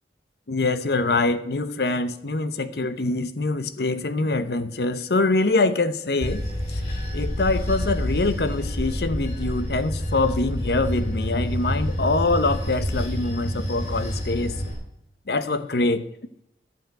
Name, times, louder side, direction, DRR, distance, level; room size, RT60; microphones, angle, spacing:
voice 1, 0.5-6.4 6.7-6.8 7.1-14.6 15.3-16.1, left 2 dB, 60° left, 0.8 m, -24 dB
Bell / Train, 6.2-14.7, equal, 40° left, 4.8 m, -28 dB
12.0 x 5.4 x 8.9 m
head